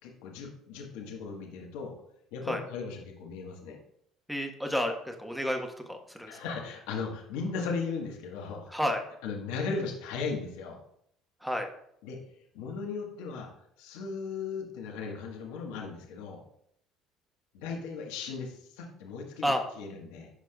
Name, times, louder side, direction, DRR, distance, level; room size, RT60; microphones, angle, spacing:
voice 1, 0.0-1.9 2.3-3.8 6.3-8.7 9.2-10.8 12.0-12.2 12.5-13.5 13.8-16.4 17.5-20.3, left 4 dB, 85° left, 0 dB, 1.4 m, -37 dB
voice 2, 4.3-6.4 8.7-9.0 11.4-11.7 19.4-19.6, equal, ahead, 3 dB, 1.3 m, -31 dB
11.5 x 4.9 x 2.4 m, 0.70 s
supercardioid pair, 90°, 0 cm